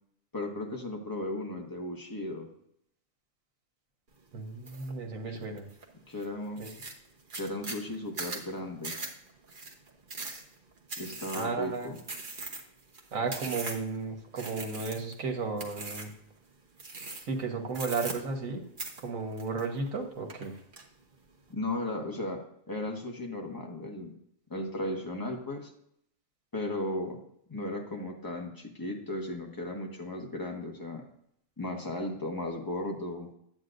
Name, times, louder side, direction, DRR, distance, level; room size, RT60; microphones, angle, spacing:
voice 1, 0.3-2.5 6.1-6.6 7.3-8.9 11.0-12.0 21.5-22.4 22.7-24.1 24.5-25.7 26.5-27.2 27.5-31.0 31.6-33.3, left 1 dB, 15° left, 1 dB, 1.3 m, -35 dB
voice 2, 4.3-5.7 6.6-6.7 11.3-11.9 13.1-16.1 17.2-18.6 19.0-20.5, right 4 dB, 85° right, 3 dB, 1.6 m, -34 dB
sound 1, 4.7-4.9 5.4-5.8 6.2-6.3 6.6-14.0 14.4-15.2 15.6-16.2 16.8-17.4 17.7-18.5 18.8-20.0 20.3-20.8, right 3 dB, 40° right, 1.2 m, -40 dB
9.5 x 8.7 x 2.6 m, 0.71 s
omnidirectional pair, 1.4 m